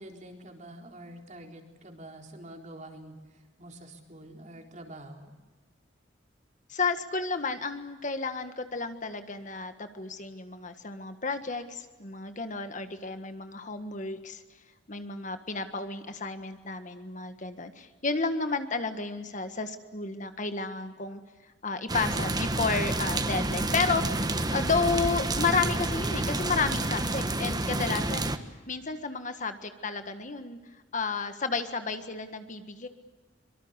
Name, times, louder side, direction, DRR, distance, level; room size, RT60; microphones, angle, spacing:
voice 1, 0.0-5.3, right 1 dB, 40° right, 2 dB, 4.1 m, -46 dB
voice 2, 6.7-14.4 14.9-21.2 21.6-28.3 28.7-30.6 30.9-32.9, left 4 dB, 40° left, 8 dB, 1.6 m, -32 dB
sound 1, 21.9-28.4, right 2 dB, 20° right, 1.3 m, -29 dB
25.0 x 24.5 x 8.2 m, 1.3 s
head